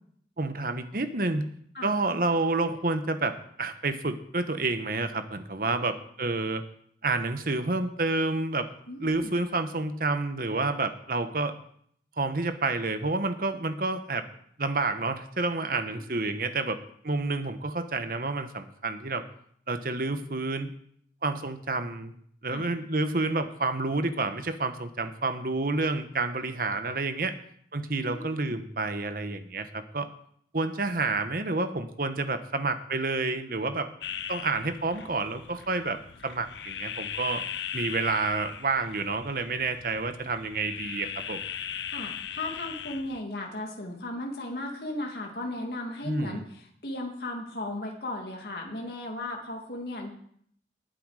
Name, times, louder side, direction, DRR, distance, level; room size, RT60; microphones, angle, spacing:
voice 1, 0.4-1.5 1.8-6.6 7.0-8.7 9.0-11.5 12.2-14.2 14.6-16.8 17.0-19.2 19.7-20.7 21.2-22.1 22.4-27.4 27.7-30.1 30.5-33.9 34.3-36.0 36.2-37.4 37.7-41.4 46.0-46.4, right 3 dB, 50° right, 9 dB, 1.1 m, -29 dB
voice 2, 8.9-9.3 15.9-16.3 22.5-22.7 27.9-28.6 41.9-50.1, left 1 dB, 60° left, 0 dB, 2.2 m, -36 dB
sound 1, 34.0-43.2, left 9 dB, 85° left, 0.6 m, -39 dB
19.5 x 7.9 x 4.9 m, 0.65 s
head